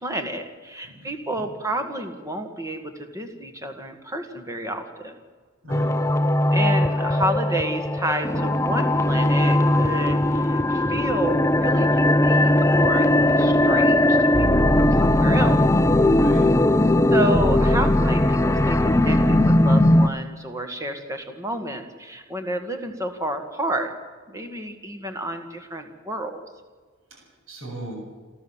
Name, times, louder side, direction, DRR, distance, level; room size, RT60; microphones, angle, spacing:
voice 1, 0.0-5.1 6.5-15.6 17.1-23.9 24.3-26.4, right 1 dB, 15° right, 6 dB, 1.9 m, -30 dB
voice 2, 0.8-1.5 5.6-6.0 12.8-13.5 16.0-16.5 27.1-27.9, right 1 dB, 75° right, 0 dB, 7.2 m, -40 dB
sound 1, 5.7-20.1, left 1 dB, 15° left, 0.5 m, -19 dB
28.5 x 13.0 x 7.4 m, 1.5 s
head